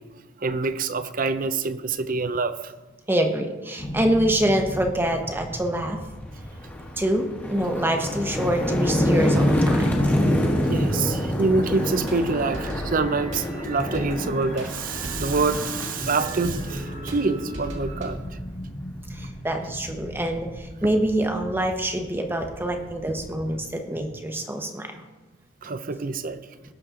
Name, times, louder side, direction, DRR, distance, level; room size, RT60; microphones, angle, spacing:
voice 1, 0.0-2.7 10.3-18.2 25.6-26.4, right 3 dB, 45° right, 12 dB, 0.6 m, -26 dB
voice 2, 3.1-6.0 7.0-9.9 19.1-25.0, right 1 dB, 10° right, 4 dB, 0.9 m, -25 dB
sound 1, 3.8-23.6, equal, 30° left, 1.5 m, -38 dB
sound 2, 5.6-5.8 6.2-17.0, left 1 dB, 10° left, 1.2 m, -26 dB
sound 3, 11.7-18.2, right 1 dB, 70° right, 2.1 m, -36 dB
17.5 x 6.6 x 3.7 m, 1.2 s
head